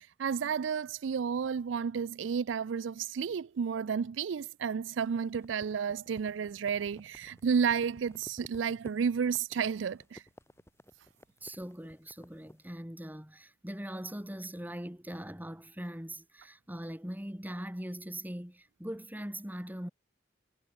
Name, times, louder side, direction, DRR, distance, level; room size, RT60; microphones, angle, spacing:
voice 1, 0.0-10.2, right 6 dB, 90° right, 0.4 m, -32 dB
sound 1, 5.2-12.6, equal, 15° left, 2.1 m, -54 dB
voice 2, 11.4-19.9, right 1 dB, 10° right, 2.4 m, -41 dB
head